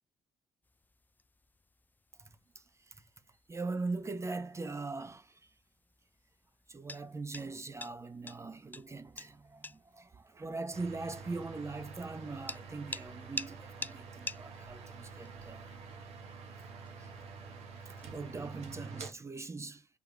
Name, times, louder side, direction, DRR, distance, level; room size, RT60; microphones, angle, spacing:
sound 1, 0.6-18.9, left 3 dB, 15° left, 0.4 m, -50 dB
voice 1, 2.5-3.0 3.5-5.5 6.7-15.6 17.0-17.1 17.9-19.9, right 3 dB, 25° right, 0.6 m, -41 dB
sound 2, 10.7-19.1, right 5 dB, 65° right, 1.1 m, -48 dB
3.4 x 3.2 x 4.6 m
hypercardioid pair, 50°, 12 cm